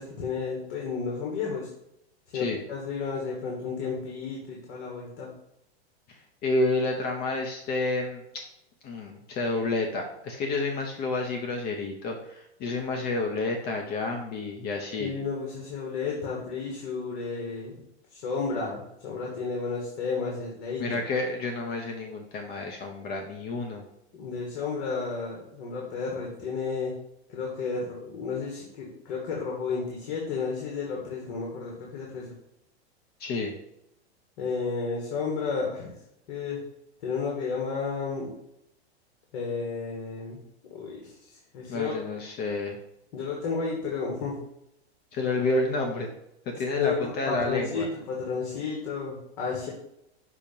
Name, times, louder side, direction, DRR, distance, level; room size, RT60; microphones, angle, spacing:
voice 1, 0.0-1.7 2.3-5.3 15.0-17.7 18.1-21.0 24.1-26.9 27.3-32.3 34.4-35.9 36.3-36.6 37.0-38.3 39.3-40.4 40.7-41.9 43.1-44.4 46.5-49.7, left 5 dB, 55° left, -2 dB, 1.7 m, -32 dB
voice 2, 6.1-8.4 8.8-15.1 20.8-23.8 33.2-33.5 41.7-42.8 45.1-46.1 46.5-47.9, left 2 dB, 30° left, 2 dB, 0.8 m, -30 dB
6.2 x 2.9 x 5.3 m, 0.80 s
hypercardioid pair, 135°, 33 cm